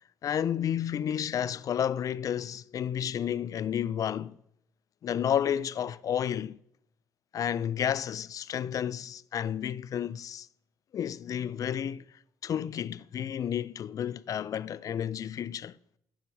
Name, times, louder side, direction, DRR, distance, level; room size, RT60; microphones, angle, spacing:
voice 1, 0.2-4.4 5.0-6.6 7.3-10.5 10.9-12.1 12.4-15.8, left 9 dB, 50° left, 0.4 m, -31 dB
9.6 x 7.2 x 7.1 m
supercardioid pair, 75°, 8 cm